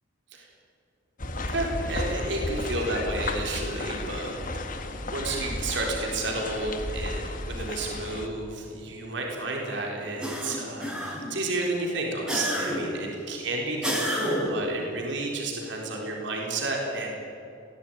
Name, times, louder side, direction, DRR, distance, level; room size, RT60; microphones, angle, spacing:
sound 1, 1.2-8.3, left 2 dB, 45° left, 1.7 m, -33 dB
voice 1, 1.4-4.8 5.1-17.1, right 2 dB, 65° right, 0 dB, 4.0 m, -31 dB
sound 2, 10.2-11.4 12.3-13.0 13.8-14.7, equal, 5° right, 4.4 m, -29 dB
20.0 x 16.0 x 9.3 m, 2.6 s
head